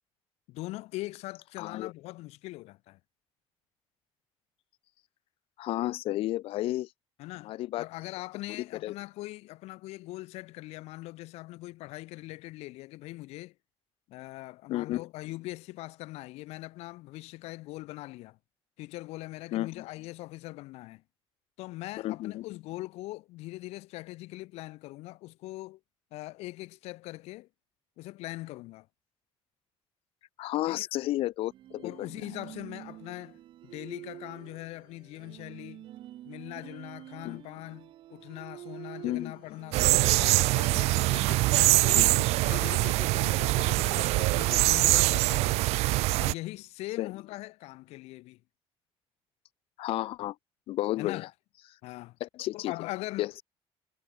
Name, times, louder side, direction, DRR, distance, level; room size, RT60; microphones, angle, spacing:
voice 1, 0.5-3.0 7.2-13.5 14.1-18.4 18.8-21.0 21.6-25.8 26.1-27.5 28.0-28.9 30.7-30.9 31.8-35.9 36.2-42.1 42.4-45.7 46.2-48.4 51.0-51.3 51.8-52.2 52.5-53.4, left 19 dB, 85° left, 5.3 m, -41 dB
voice 2, 1.6-1.9 5.6-6.9 7.4-7.9 8.6-8.9 14.7-15.0 19.5-19.8 22.0-22.5 30.4-32.1 37.2-37.4 39.0-39.3 42.0-42.3 47.0-47.1 49.8-50.3 50.7-51.2 52.2-52.7 53.2-53.4, left 15 dB, 60° left, 2.5 m, -32 dB
sound 1, 31.4-46.5, right 13 dB, 50° right, 6.2 m, -49 dB
sound 2, 39.7-46.3, right 20 dB, 85° right, 0.8 m, -24 dB
cardioid pair, 175°, 11 cm